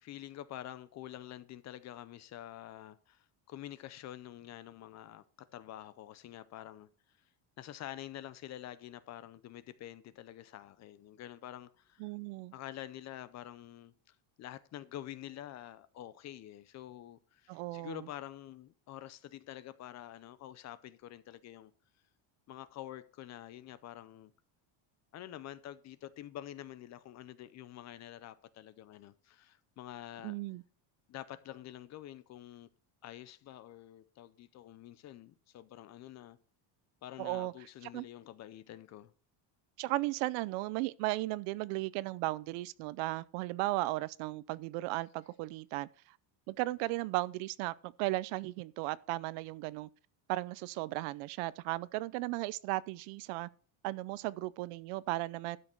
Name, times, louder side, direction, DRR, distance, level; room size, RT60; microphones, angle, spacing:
voice 1, 0.0-7.3 7.6-12.1 12.5-21.7 22.5-24.3 25.1-30.3 31.1-32.7 33.0-36.4 37.0-39.1, left 12 dB, 35° left, 0.5 m, -47 dB
voice 2, 12.0-12.5 17.5-18.0 30.2-30.6 37.2-37.5 37.9-38.0 39.8-45.9 46.5-49.9 50.3-53.5 53.8-55.6, right 19 dB, 85° right, 0.7 m, -36 dB
12.0 x 6.6 x 4.4 m
cardioid pair, 170°, 50 cm